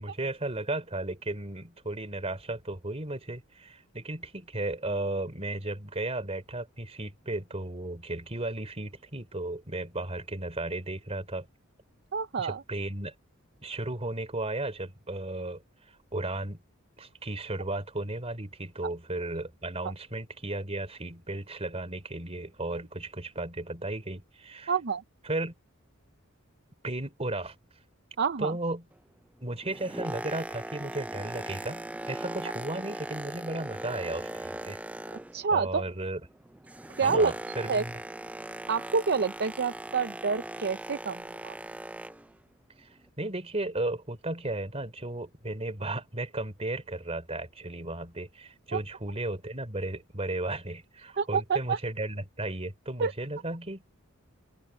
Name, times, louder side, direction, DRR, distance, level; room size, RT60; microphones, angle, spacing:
voice 1, 0.0-11.5 12.4-13.1 13.6-15.6 16.1-16.6 17.0-24.7 25.2-25.5 26.8-27.6 28.4-28.8 29.4-34.8 35.5-36.2 37.0-38.0 42.8-42.9 43.2-53.8, right 2 dB, 30° right, 3.6 m, -35 dB
voice 2, 12.1-12.6 24.7-25.0 28.2-28.5 35.3-35.8 37.0-37.3 37.7-37.8 38.7-41.6 48.7-48.8 51.2-51.8 53.0-53.1, right 5 dB, 50° right, 0.6 m, -28 dB
Boat Water vehicle, 29.5-35.6 35.9-42.3 43.0-43.1, right 1 dB, 5° right, 0.4 m, -39 dB
open air
head